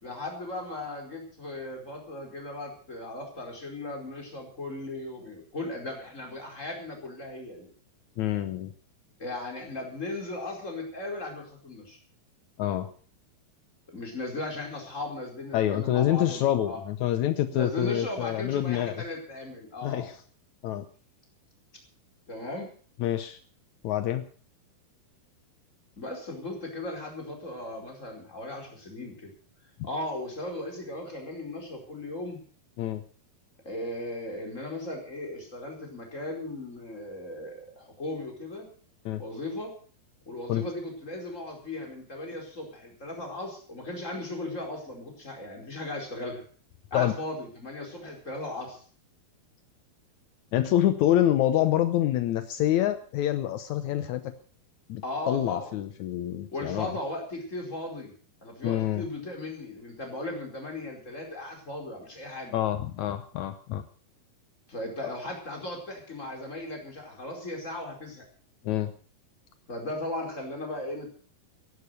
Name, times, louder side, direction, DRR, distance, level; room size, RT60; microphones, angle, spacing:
voice 1, 0.0-7.7 9.2-12.0 13.9-16.8 17.5-20.1 22.3-22.7 26.0-29.3 29.8-32.4 33.6-38.7 39.2-39.7 40.2-46.4 46.9-48.8 55.0-55.7 56.5-58.1 58.4-62.5 64.7-68.3 69.7-71.1, left 2 dB, 20° left, 1 dB, 4.7 m, -37 dB
voice 2, 8.2-8.7 12.6-12.9 15.5-19.0 19.8-20.1 20.6-20.8 23.0-23.4 23.8-24.3 32.8-33.0 39.0-39.2 40.5-40.6 46.9-47.1 50.5-54.3 54.9-56.9 58.6-59.0 62.5-63.8 68.6-68.9, left 12 dB, 80° left, 10 dB, 1.6 m, -26 dB
16.0 x 11.5 x 6.7 m, 0.43 s
omnidirectional pair, 4.6 m